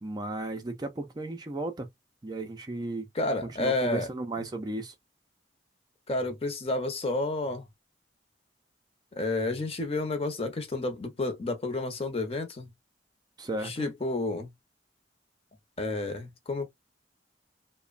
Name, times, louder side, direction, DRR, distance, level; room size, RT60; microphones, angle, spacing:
voice 1, 0.0-1.9 2.2-3.1 3.4-4.9 13.4-13.9, right 2 dB, 25° right, 0.4 m, -35 dB
voice 2, 3.1-4.1 4.4-4.5 6.1-7.7 9.1-12.7 13.6-14.5 15.8-16.7, left 2 dB, 35° left, 0.7 m, -30 dB
2.9 x 2.1 x 2.4 m
head